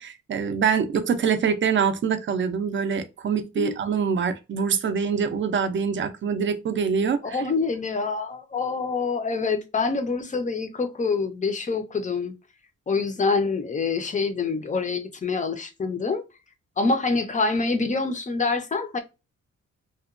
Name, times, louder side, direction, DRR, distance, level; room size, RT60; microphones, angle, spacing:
voice 1, 0.0-7.4, right 6 dB, 40° right, 0.4 m, -25 dB
voice 2, 7.2-12.3 12.9-16.2 16.8-19.0, left 4 dB, 25° left, 0.4 m, -26 dB
2.8 x 2.2 x 2.3 m
wide cardioid pair, 175°, 30 cm